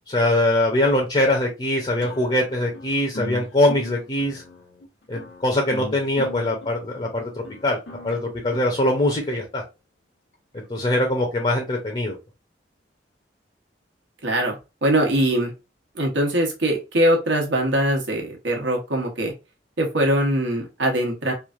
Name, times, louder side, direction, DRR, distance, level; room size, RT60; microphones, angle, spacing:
voice 1, 0.1-4.4 5.1-7.3 7.6-7.8 8.0-9.6 10.5-12.2, left 1 dB, 30° left, 1 dB, 0.6 m, -22 dB
sound 1, 2.0-9.4, left 2 dB, 80° left, 0.9 m, -39 dB
voice 2, 14.2-15.5 15.9-19.3 19.8-21.3, right 1 dB, 85° right, 1 dB, 1.0 m, -22 dB
3.1 x 2.5 x 2.4 m, 0.27 s
head